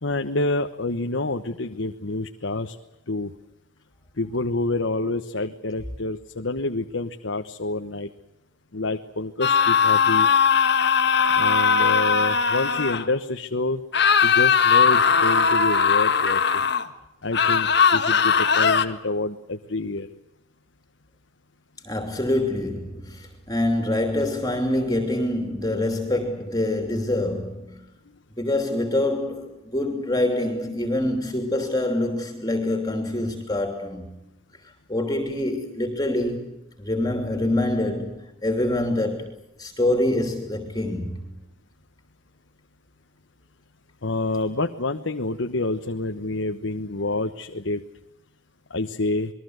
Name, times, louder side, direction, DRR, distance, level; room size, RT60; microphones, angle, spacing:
voice 1, 0.0-2.8 3.1-3.3 4.2-8.1 8.7-10.3 11.3-13.8 14.2-16.7 17.2-20.1 44.0-47.8 48.7-49.3, left 2 dB, 75° left, 1.2 m, -28 dB
sound 1, 9.4-13.0 13.9-16.9 17.3-18.8, left 6 dB, 55° left, 1.7 m, -19 dB
voice 2, 21.8-27.9 28.4-34.1 34.9-41.3, left 1 dB, 20° left, 3.0 m, -25 dB
28.5 x 21.5 x 8.0 m
head